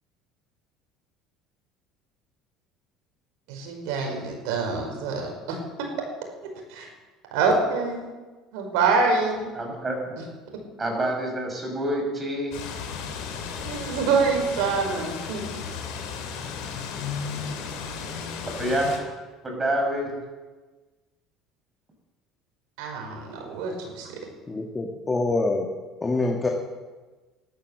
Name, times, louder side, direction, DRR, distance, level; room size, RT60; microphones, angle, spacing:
voice 1, 3.5-5.6 6.7-6.9 7.3-8.1 8.5-9.5 13.6-15.6 22.8-24.1, right 4 dB, 75° right, 2 dB, 5.1 m, -25 dB
voice 2, 9.5-10.1 10.8-12.6 18.4-18.9 19.4-20.2, right 1 dB, 25° right, 2 dB, 6.1 m, -27 dB
sound 1, 12.5-19.0, left 6 dB, 80° left, 3.1 m, -34 dB
voice 3, 24.5-25.7 26.0-26.5, left 2 dB, 20° left, 1 dB, 1.9 m, -25 dB
13.0 x 12.0 x 7.6 m, 1.3 s
supercardioid pair, 95°, 0 cm